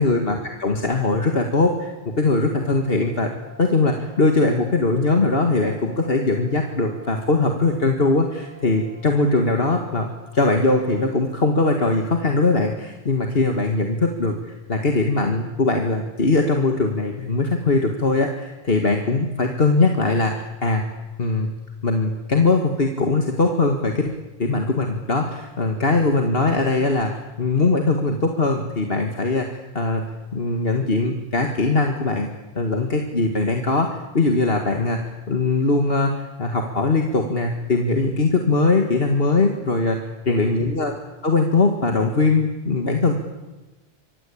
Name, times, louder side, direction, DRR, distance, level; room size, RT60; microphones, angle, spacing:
voice 1, 0.0-3.3 3.6-10.1 10.3-20.8 21.2-21.5 21.8-30.0 30.3-32.3 32.6-40.0 40.3-40.9 41.2-43.1, left 3 dB, 55° left, 3 dB, 2.2 m, -21 dB
Brass instrument, 2.5-11.0, right 2 dB, 15° right, 7.6 m, -47 dB
27.5 x 23.5 x 8.7 m, 1.2 s
omnidirectional pair, 1.2 m